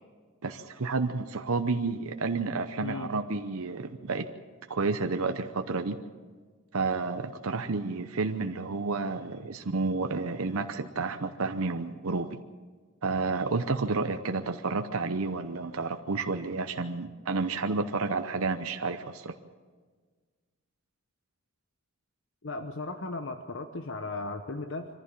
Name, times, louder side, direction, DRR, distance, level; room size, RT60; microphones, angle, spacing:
voice 1, 0.4-4.3 4.7-6.0 6.7-12.4 13.0-19.4, right 3 dB, 80° right, 7 dB, 0.8 m, -30 dB
voice 2, 22.4-24.9, left 3 dB, 60° left, 6 dB, 0.9 m, -36 dB
24.0 x 15.0 x 7.4 m, 1.5 s
head